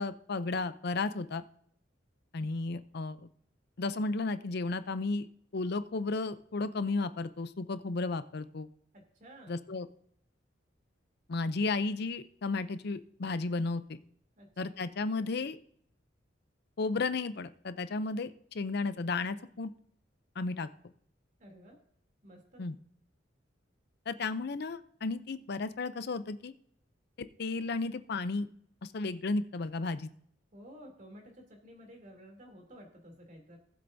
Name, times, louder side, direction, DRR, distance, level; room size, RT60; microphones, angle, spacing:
voice 1, 0.0-1.4 2.3-3.3 3.8-5.3 5.5-8.7 9.5-9.9 11.3-14.0 14.6-15.6 16.8-19.7 20.4-20.7 22.6-22.8 24.1-26.5 27.4-28.5 28.8-30.1, left 3 dB, 60° left, 12 dB, 0.6 m, -33 dB
voice 2, 8.9-9.6 14.4-14.7 21.4-21.8 22.2-22.6 30.5-33.6, equal, 45° right, 1 dB, 3.1 m, -52 dB
18.5 x 7.7 x 2.7 m, 0.65 s
head